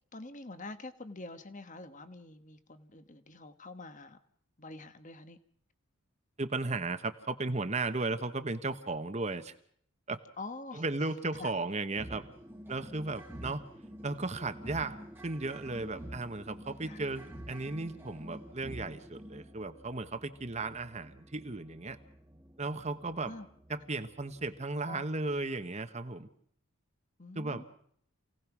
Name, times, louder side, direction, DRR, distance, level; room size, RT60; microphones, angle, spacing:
voice 1, 0.1-4.2 4.6-5.4 10.4-10.8 11.3-11.5 13.4-13.6 16.9-17.0 23.2-23.5 24.9-25.0 27.2-27.6, left 2 dB, 35° left, 11 dB, 1.3 m, -46 dB
voice 2, 6.4-9.5 10.1-10.2 10.7-12.2 12.7-13.6 14.0-22.0 22.6-23.3 23.7-26.3 27.3-27.6, right 3 dB, 30° right, 8 dB, 1.1 m, -35 dB
sound 1, 12.0-24.6, equal, 10° right, 1.5 m, -49 dB
28.0 x 17.5 x 6.1 m, 0.65 s
head